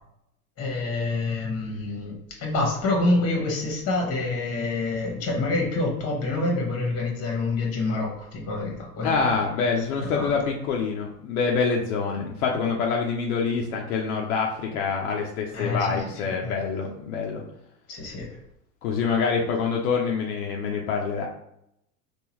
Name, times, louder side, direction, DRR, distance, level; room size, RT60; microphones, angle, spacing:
voice 1, 0.6-9.3 10.0-10.3 15.5-16.5 17.9-18.3, left 2 dB, 30° left, 1 dB, 1.3 m, -27 dB
voice 2, 9.0-17.4 18.8-21.3, left 5 dB, 70° left, -1 dB, 0.7 m, -26 dB
3.7 x 2.5 x 3.0 m, 0.77 s
hypercardioid pair, 105°, 46 cm